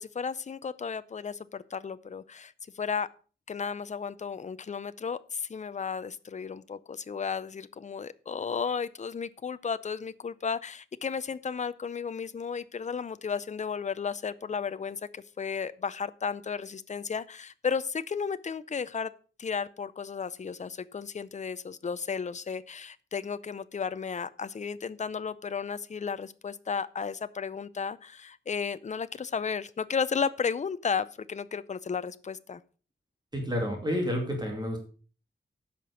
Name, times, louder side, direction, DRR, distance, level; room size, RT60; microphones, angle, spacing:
voice 1, 0.0-3.1 3.5-19.1 19.4-32.6, left 6 dB, 35° left, 15 dB, 0.5 m, -34 dB
voice 2, 33.3-34.8, equal, 20° right, 1 dB, 2.4 m, -30 dB
10.5 x 6.0 x 6.3 m, 0.38 s
wide cardioid pair, 135°, 20 cm